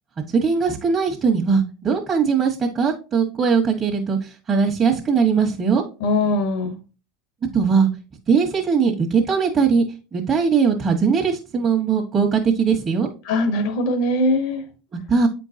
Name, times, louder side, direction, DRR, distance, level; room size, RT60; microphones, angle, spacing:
voice 1, 0.3-5.8 7.5-7.9 8.3-9.8 10.1-13.1 14.9-15.3, right 5 dB, 30° right, -1 dB, 1.3 m, -20 dB
voice 2, 6.0-6.8 13.2-14.6, left 1 dB, 75° left, 7 dB, 1.1 m, -21 dB
8.1 x 4.5 x 2.8 m, 0.33 s
supercardioid pair, 115°, 0 cm